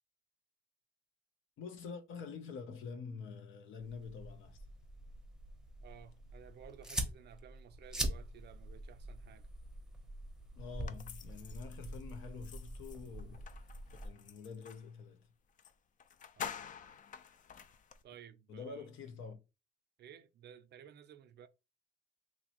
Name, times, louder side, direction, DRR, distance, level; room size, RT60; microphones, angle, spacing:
voice 1, 1.6-4.6 10.6-13.4 14.0-15.3 18.5-19.4, left 5 dB, 80° left, 0.6 m, -47 dB
sound 1, 3.8-14.1, right 1 dB, 5° right, 0.7 m, -44 dB
voice 2, 5.8-9.5 16.4-16.6 18.0-18.8 20.0-21.5, right 9 dB, 60° right, 0.4 m, -55 dB
sound 2, 10.8-14.9 15.6-15.7 16.0-18.0, left 7 dB, 40° left, 0.4 m, -49 dB
3.1 x 2.5 x 2.9 m
cardioid pair, 90°, 20 cm